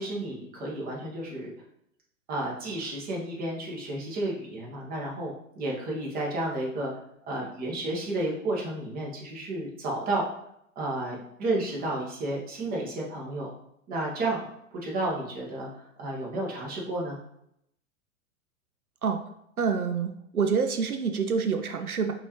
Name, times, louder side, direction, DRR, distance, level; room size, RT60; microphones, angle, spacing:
voice 1, 0.0-1.5 2.3-6.9 7.3-10.2 10.7-13.5 13.9-14.4 14.8-17.2, right 2 dB, 20° right, -3 dB, 1.3 m, -32 dB
voice 2, 19.6-22.1, right 5 dB, 90° right, 6 dB, 0.5 m, -27 dB
5.2 x 2.9 x 3.1 m, 0.76 s
figure-of-eight pair, 105°, 42 cm